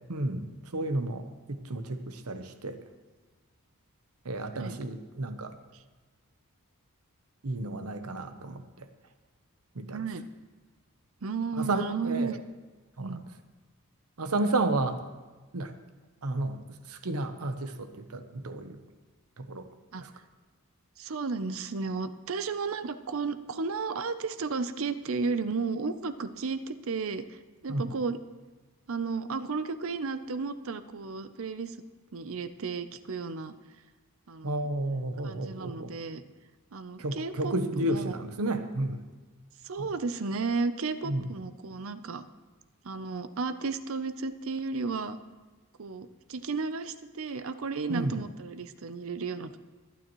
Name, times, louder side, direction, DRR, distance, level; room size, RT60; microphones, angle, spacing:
voice 1, 0.1-2.8 4.2-5.5 7.4-8.9 9.7-10.0 11.5-12.3 13.0-13.2 14.2-15.0 15.5-15.7 16.2-18.8 19.4-19.7 20.0-20.1 27.7-27.9 34.4-35.9 37.0-39.0 41.0-41.3 47.9-48.1, right 2 dB, 85° right, 9 dB, 0.9 m, -32 dB
voice 2, 9.9-10.2 11.2-12.4 13.0-13.2 19.9-20.0 21.0-27.4 27.6-28.2 28.9-31.8 32.1-33.5 34.3-34.7 35.2-36.2 36.7-38.1 39.6-42.2 42.8-45.2 45.8-49.6, right 4 dB, 65° right, 12 dB, 0.6 m, -33 dB
21.5 x 9.1 x 3.1 m, 1.3 s
head